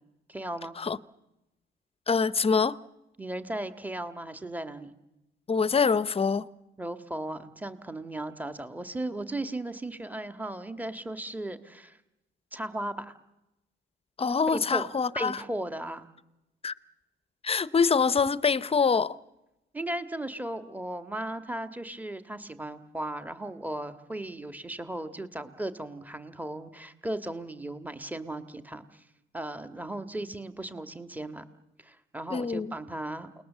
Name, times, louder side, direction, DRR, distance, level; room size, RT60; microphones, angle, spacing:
voice 1, 0.3-0.7 3.2-4.9 6.8-12.0 12.5-13.1 14.5-14.9 15.1-16.1 19.7-29.0 29.3-31.4 31.8-33.3, right 1 dB, 10° right, 1.7 m, -36 dB
voice 2, 2.1-2.8 5.5-6.5 14.2-15.4 16.6-16.7 17.4-19.2 32.3-32.7, left 5 dB, 30° left, 0.8 m, -25 dB
29.0 x 19.5 x 7.4 m
cardioid pair, 90°, 20 cm